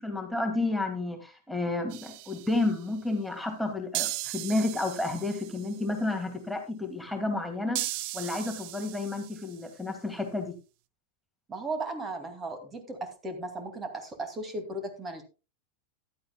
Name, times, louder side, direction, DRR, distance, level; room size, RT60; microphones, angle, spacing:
voice 1, 0.0-7.9 8.1-10.5, left 2 dB, ahead, 3 dB, 2.3 m, -31 dB
sound 1, 1.9-2.8 3.9-5.8 7.8-9.7, right 18 dB, 45° right, 0.6 m, -37 dB
voice 2, 11.5-15.2, right 2 dB, 20° right, 7 dB, 2.3 m, -36 dB
15.0 x 11.5 x 2.2 m, 0.30 s
figure-of-eight pair, 90°, 0 cm